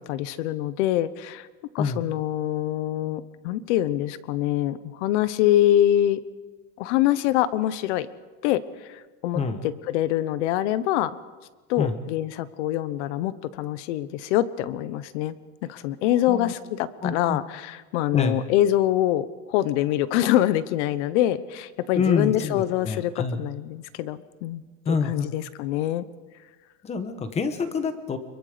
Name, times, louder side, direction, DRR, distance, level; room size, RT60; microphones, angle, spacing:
voice 1, 0.1-1.5 1.7-6.2 6.8-8.1 8.4-11.2 11.7-15.3 15.6-26.1, left 13 dB, 60° left, 15 dB, 1.1 m, -25 dB
voice 2, 17.0-17.4 18.1-18.4 21.9-23.4 24.8-25.3 26.8-28.2, left 5 dB, 15° left, 9 dB, 1.2 m, -27 dB
25.0 x 22.5 x 5.1 m, 1.3 s
supercardioid pair, 165°, 40 cm